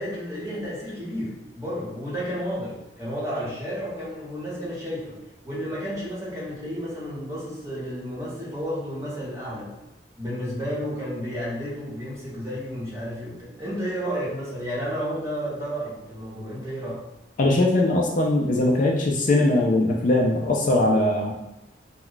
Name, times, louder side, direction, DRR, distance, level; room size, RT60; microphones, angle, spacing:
voice 1, 0.0-5.1 5.4-9.7 10.2-17.0, equal, 15° right, -8 dB, 1.0 m, -32 dB
voice 2, 17.4-21.3, left 2 dB, 45° left, 0 dB, 0.4 m, -20 dB
2.3 x 2.2 x 3.8 m, 0.94 s
head